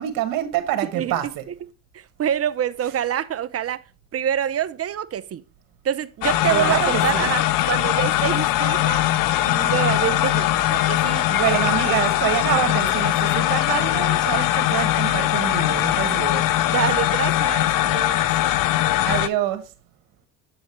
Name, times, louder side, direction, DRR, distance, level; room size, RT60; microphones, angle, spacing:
voice 1, 0.0-1.4 6.5-7.3 11.3-16.4 19.1-19.6, right 12 dB, 75° right, 1.7 m, -26 dB
voice 2, 0.9-1.3 1.9-3.8 4.1-5.4 5.8-9.0 9.4-11.3 16.6-18.3, right 10 dB, 45° right, 0.8 m, -26 dB
sound 1, 6.2-19.3, left 14 dB, 70° left, 0.7 m, -21 dB
7.8 x 7.8 x 3.2 m
supercardioid pair, 80°, 34 cm